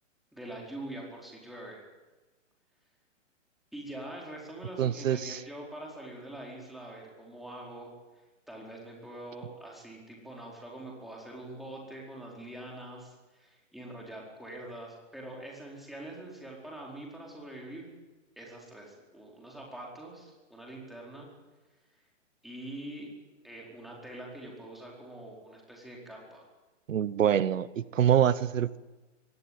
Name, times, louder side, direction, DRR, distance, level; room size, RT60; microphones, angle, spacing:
voice 1, 0.3-1.8 3.7-7.9 8.5-17.9 18.4-21.3 22.4-23.1 23.4-26.4, right 1 dB, ahead, -3 dB, 4.6 m, -44 dB
voice 2, 4.8-5.4 26.9-28.8, right 9 dB, 85° right, 17 dB, 1.0 m, -25 dB
23.0 x 17.5 x 9.2 m, 1.2 s
hypercardioid pair, 155°, 38 cm